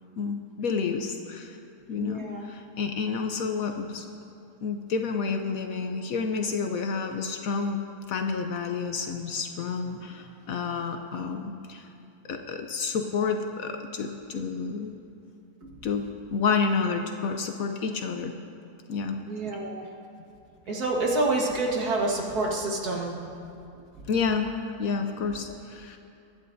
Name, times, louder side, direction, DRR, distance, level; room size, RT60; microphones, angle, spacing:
voice 1, 0.2-1.6 1.9-4.0 4.6-7.8 8.1-11.8 12.3-14.9 15.8-18.3 18.9-19.2 24.1-24.5 24.8-26.0, left 5 dB, 65° left, 5 dB, 1.0 m, -29 dB
voice 2, 2.0-2.5 19.3-19.9 20.7-23.2, right 2 dB, 65° right, -1 dB, 2.0 m, -27 dB
22.5 x 11.0 x 2.7 m, 2.6 s
omnidirectional pair, 1.8 m